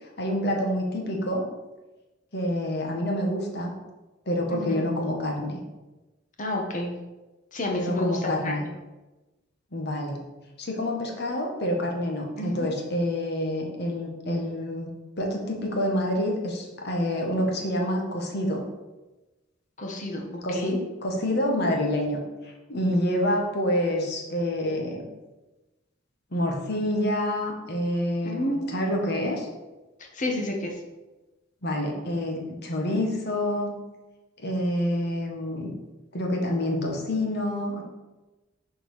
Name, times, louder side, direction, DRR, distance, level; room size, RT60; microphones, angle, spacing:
voice 1, 0.0-1.4 2.3-3.7 4.2-5.6 7.8-8.6 9.7-10.2 10.6-14.9 15.2-18.6 20.4-25.1 26.3-29.5 31.6-33.8 34.4-35.7 36.1-37.8, left 1 dB, 55° left, 1 dB, 1.6 m, -27 dB
voice 2, 4.5-4.8 6.4-6.9 7.5-8.7 12.4-12.7 19.8-20.8 22.9-23.2 28.2-28.7 30.1-30.7, left 1 dB, 40° left, 1 dB, 1.4 m, -30 dB
6.8 x 4.6 x 6.4 m, 1.1 s
head